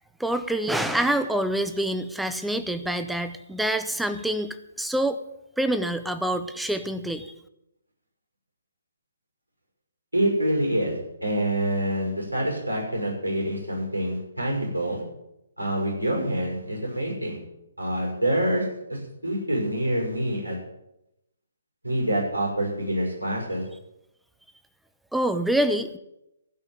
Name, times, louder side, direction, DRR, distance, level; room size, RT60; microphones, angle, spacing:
voice 1, 0.2-5.2 5.6-7.3 25.1-26.0, right 1 dB, ahead, 10 dB, 0.7 m, -26 dB
voice 2, 10.1-15.0 15.6-17.4 17.8-20.6 21.8-23.6, right 1 dB, 85° right, -1 dB, 6.2 m, -26 dB
16.0 x 5.5 x 9.4 m, 0.86 s
figure-of-eight pair, 135°, 0 cm